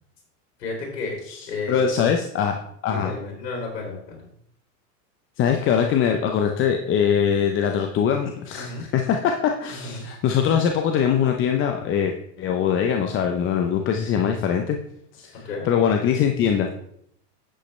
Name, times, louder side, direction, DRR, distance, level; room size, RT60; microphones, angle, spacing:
voice 1, 0.6-2.1 2.8-4.3 8.5-8.8 9.7-10.1 15.3-15.7, left 3 dB, 85° left, -1 dB, 3.4 m, -32 dB
voice 2, 1.7-3.1 5.4-14.8 15.1-16.7, left 8 dB, 25° left, 4 dB, 0.7 m, -22 dB
10.0 x 7.9 x 3.3 m, 0.71 s
supercardioid pair, 130°, 48 cm